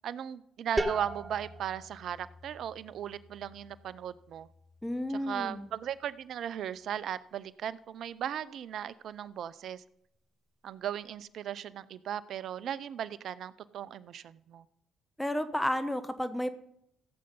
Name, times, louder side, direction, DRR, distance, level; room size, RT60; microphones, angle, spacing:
voice 1, 0.0-4.5 5.1-9.8 10.6-14.6, right 9 dB, 65° right, 18 dB, 0.5 m, -37 dB
sound 1, 0.8-6.3, right 1 dB, 25° right, 1.5 m, -40 dB
voice 2, 4.8-5.6 15.2-16.5, left 1 dB, 10° left, 12 dB, 1.1 m, -32 dB
16.0 x 7.9 x 5.4 m, 0.76 s
hypercardioid pair, 50°, 0 cm